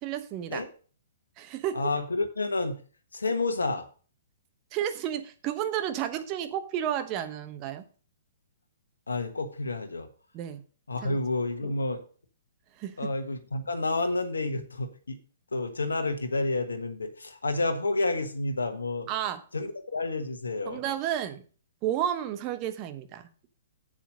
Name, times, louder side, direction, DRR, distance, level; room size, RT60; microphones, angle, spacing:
voice 1, 0.0-0.6 1.4-1.9 4.7-7.8 10.3-10.6 11.0-11.2 11.6-11.7 12.8-13.1 19.1-19.4 20.7-21.4 21.8-23.2, right 10 dB, 30° right, 9 dB, 1.1 m, -32 dB
voice 2, 1.7-2.8 3.1-3.8 9.1-10.1 10.9-12.0 13.0-15.2 15.5-19.1 19.5-20.8, left 2 dB, 75° left, 6 dB, 1.3 m, -30 dB
8.0 x 7.2 x 5.2 m, 0.40 s
figure-of-eight pair, 120°, 0 cm